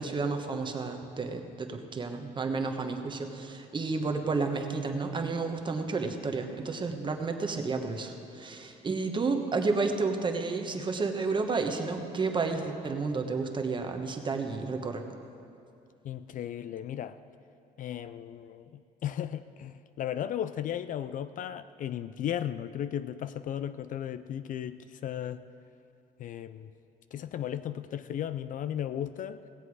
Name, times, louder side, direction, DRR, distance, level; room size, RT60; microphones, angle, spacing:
voice 1, 0.0-15.0, right 4 dB, 30° right, 5 dB, 1.1 m, -31 dB
voice 2, 16.0-17.2 17.8-25.4 26.2-26.7 27.1-29.4, left 10 dB, 50° left, 13 dB, 0.4 m, -35 dB
17.5 x 7.9 x 4.8 m, 2.5 s
cardioid pair, 110°, 17 cm